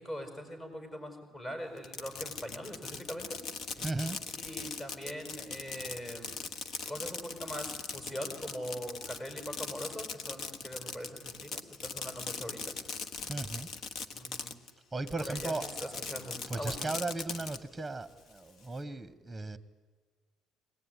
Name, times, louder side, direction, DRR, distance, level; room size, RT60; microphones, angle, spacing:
voice 1, 0.0-3.4 4.4-6.4 6.9-12.7 14.1-14.5 15.2-15.5 15.8-17.0, equal, 25° left, 6 dB, 6.1 m, -42 dB
Fireworks, 1.8-14.7 15.1-17.6, left 5 dB, 60° left, 1.3 m, -40 dB
voice 2, 3.8-4.2 13.2-13.7 14.9-16.2 16.5-19.6, right 3 dB, 10° right, 13 dB, 1.3 m, -37 dB
23.5 x 19.0 x 9.7 m, 1.5 s
cardioid pair, 90°, 0 cm